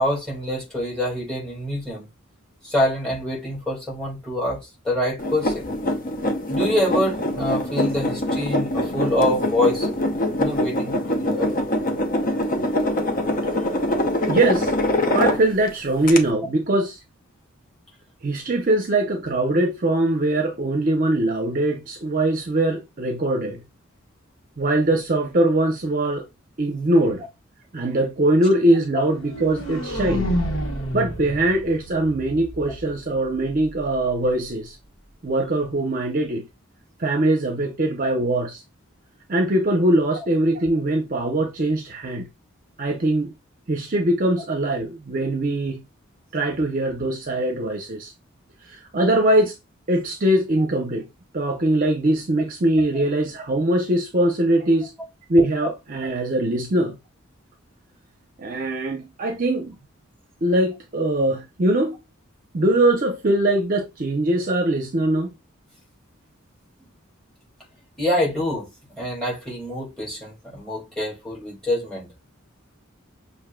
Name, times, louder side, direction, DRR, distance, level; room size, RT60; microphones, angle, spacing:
voice 1, 0.0-2.1 2.6-5.7 6.5-9.9 10.4-11.5 52.9-53.0 66.8-66.9 68.0-68.7 69.0-72.1, left 1 dB, 5° left, 1.8 m, -25 dB
sound 1, 5.2-15.7 16.1-16.2, left 1 dB, 40° left, 0.7 m, -24 dB
voice 2, 14.3-14.7 15.1-17.0 18.2-23.6 24.6-26.2 26.6-27.2 27.7-30.3 30.9-34.7 35.2-36.4 37.0-38.6 39.3-42.3 42.8-43.3 43.7-45.8 46.3-48.1 48.7-49.5 49.9-51.1 51.3-54.9 55.3-56.9 58.4-59.7 60.4-62.0 62.5-65.3, right 1 dB, 40° right, 0.6 m, -21 dB
sound 2, 29.1-33.1, equal, 80° left, 1.4 m, -29 dB
6.2 x 2.6 x 2.2 m
head